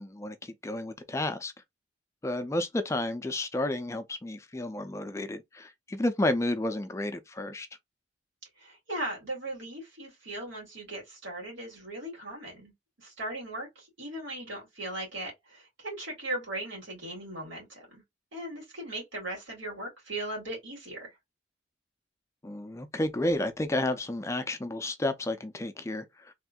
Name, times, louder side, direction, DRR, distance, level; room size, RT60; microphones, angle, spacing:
voice 1, 0.0-1.5 2.2-7.7 22.4-26.3, left 1 dB, 15° left, 0.3 m, -31 dB
voice 2, 8.6-12.7 13.0-18.0 18.3-21.1, right 1 dB, 90° right, 2.3 m, -38 dB
3.5 x 2.5 x 2.2 m
head